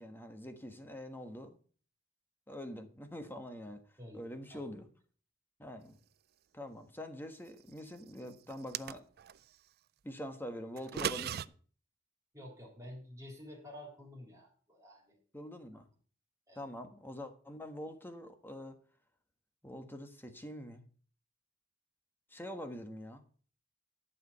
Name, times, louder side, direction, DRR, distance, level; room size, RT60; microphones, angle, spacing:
voice 1, 0.0-1.6 2.5-3.8 4.1-4.9 5.6-6.0 6.5-9.0 10.0-11.5 15.3-15.9 16.5-18.8 19.6-20.8 22.3-23.2, left 1 dB, 10° left, 7 dB, 1.3 m, -45 dB
sound 1, 8.5-9.4 10.8-11.5, right 9 dB, 55° right, 0.4 m, -37 dB
voice 2, 12.3-15.2 16.5-16.6, left 1 dB, 15° right, -1 dB, 3.5 m, -50 dB
11.5 x 5.0 x 8.0 m, 0.44 s
head